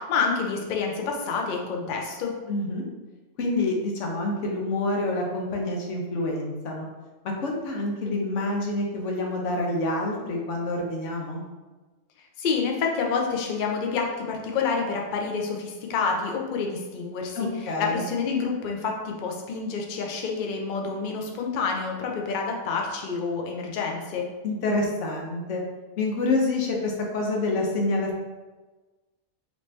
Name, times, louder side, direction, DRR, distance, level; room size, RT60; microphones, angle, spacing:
voice 1, 0.0-2.3 12.4-17.5 17.8-24.2, left 5 dB, 60° left, 1 dB, 0.6 m, -28 dB
voice 2, 2.5-2.8 3.4-6.9 7.2-11.4 17.3-18.1 24.4-25.6 26.0-28.2, left 2 dB, 80° left, 0 dB, 1.1 m, -27 dB
3.1 x 2.6 x 3.2 m, 1.2 s
omnidirectional pair, 1.2 m